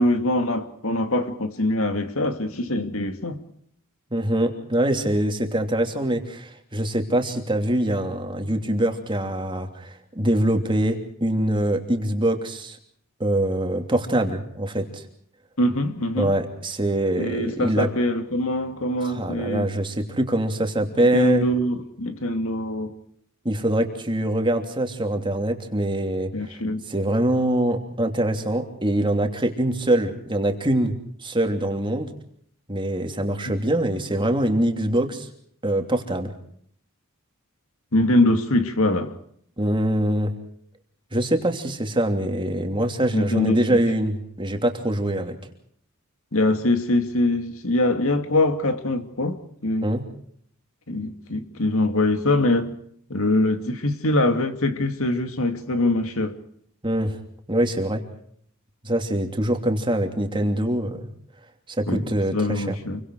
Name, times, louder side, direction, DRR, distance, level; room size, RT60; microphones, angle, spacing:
voice 1, 0.0-3.4 15.6-16.3 17.2-19.7 21.0-22.9 26.3-26.8 37.9-39.2 43.1-43.8 46.3-49.9 50.9-52.7 53.1-56.4 61.9-63.0, left 1 dB, 65° left, 2.4 m, -23 dB
voice 2, 4.1-12.8 13.2-15.0 16.2-17.9 19.0-21.5 23.4-26.3 26.9-30.9 31.2-32.1 32.7-35.3 35.6-36.3 39.6-40.3 41.1-45.4 49.8-50.0 56.8-57.2 57.5-58.0 58.8-61.1 61.7-62.7, right 1 dB, 20° right, 3.0 m, -24 dB
28.5 x 24.0 x 4.8 m
head